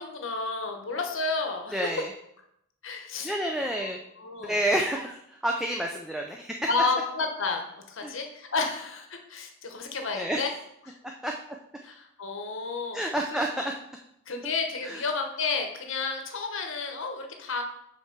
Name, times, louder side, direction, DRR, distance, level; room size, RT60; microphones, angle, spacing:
voice 1, 0.0-1.8 2.8-3.3 3.6-3.9 4.2-4.6 6.7-10.5 10.9-11.0 11.8-13.0 14.3-17.6, left 4 dB, 55° left, 4 dB, 1.1 m, -31 dB
voice 2, 1.7-2.1 3.2-4.0 4.4-6.7 8.0-8.2 10.1-10.5 11.0-11.3 12.9-13.7 14.4-14.5 14.8-15.0, right 1 dB, ahead, 1 dB, 0.4 m, -29 dB
5.9 x 4.5 x 5.8 m, 0.77 s
head